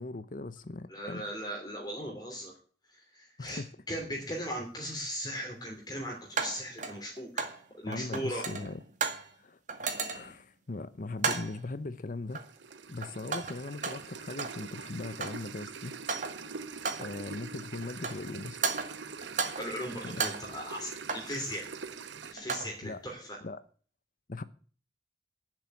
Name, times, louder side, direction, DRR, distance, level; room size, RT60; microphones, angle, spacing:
voice 1, 0.0-1.3 3.4-3.7 7.9-8.8 9.4-9.6 10.1-12.4 12.9-15.9 17.0-18.6 19.9-20.2 22.8-23.0 23.4-23.6 24.3-24.4, left 2 dB, 45° left, 0.7 m, -39 dB
voice 2, 0.9-2.5 2.9-3.6 3.9-7.4 7.7-8.4 19.6-21.6 22.3-23.4, equal, 20° left, 2.9 m, -38 dB
sound 1, 4.1-4.2 6.4-7.6 7.9-9.3 9.7-10.4 11.2-11.6 12.3-12.7 13.0-14.6 14.9-15.5 15.9-16.5 16.8-17.2 17.8-18.3 18.6-19.8 20.1-21.4 22.2-22.8, right 5 dB, 45° right, 2.1 m, -35 dB
sound 2, 12.3-22.3, right 5 dB, 80° right, 0.9 m, -44 dB
11.0 x 7.7 x 9.6 m
head